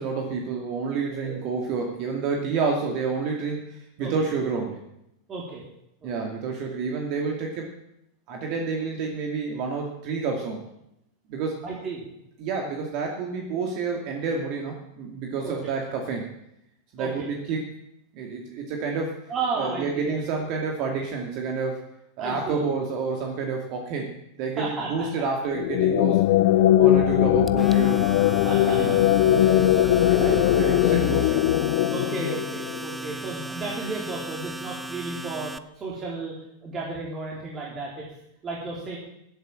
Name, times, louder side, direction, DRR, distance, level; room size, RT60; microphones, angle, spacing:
voice 1, 0.0-4.8 6.0-7.7 8.3-10.7 11.3-11.6 12.4-16.3 16.9-17.7 18.1-19.2 19.6-21.8 22.2-26.2 26.8-28.1 28.8-28.9 30.0-31.5, right 4 dB, 50° right, 2 dB, 2.3 m, -29 dB
voice 2, 5.3-5.6 6.0-6.1 11.6-12.0 15.4-15.5 17.0-17.3 19.3-20.2 22.2-22.7 24.6-25.1 26.8-27.2 28.4-29.0 29.4-30.4 31.9-36.3 36.6-38.1 38.4-39.0, right 3 dB, 30° right, -4 dB, 3.6 m, -34 dB
sound 1, 25.5-33.0, left 12 dB, 60° left, 0.7 m, -20 dB
Domestic sounds home sounds, 27.5-35.6, right 1 dB, 5° right, 0.7 m, -36 dB
15.0 x 8.2 x 7.6 m, 0.83 s
figure-of-eight pair, 90°, 0 cm